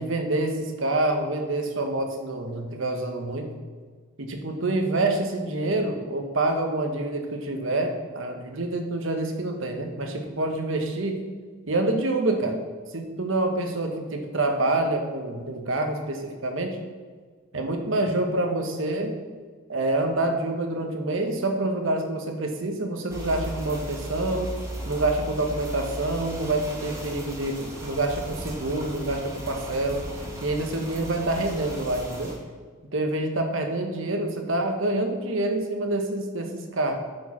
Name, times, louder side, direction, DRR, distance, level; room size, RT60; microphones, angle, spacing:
voice 1, 0.0-3.5 4.2-11.2 11.7-12.6 12.9-16.8 17.5-19.2 19.7-24.5 24.8-30.1 30.4-32.3 32.9-36.9, right 2 dB, 70° right, 4 dB, 1.2 m, -27 dB
sound 1, 23.1-32.3, right 1 dB, 15° right, 1.5 m, -36 dB
8.8 x 5.0 x 5.7 m, 1.5 s
head